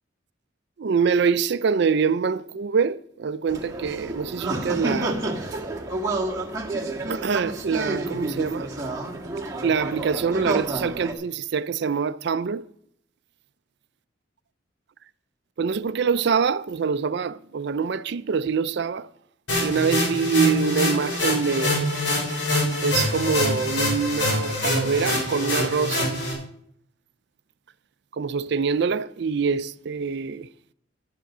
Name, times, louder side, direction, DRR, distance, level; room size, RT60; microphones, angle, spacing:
voice 1, 0.8-5.2 7.1-8.7 9.6-12.6 15.6-19.1 19.6-21.9 22.8-26.2 28.2-30.5, right 5 dB, 60° right, 0.4 m, -25 dB
sound 1, 3.5-11.1, right 2 dB, 20° right, 1.6 m, -29 dB
sound 2, 19.5-26.3, left 1 dB, 80° left, 6.2 m, -25 dB
10.5 x 9.1 x 6.1 m
head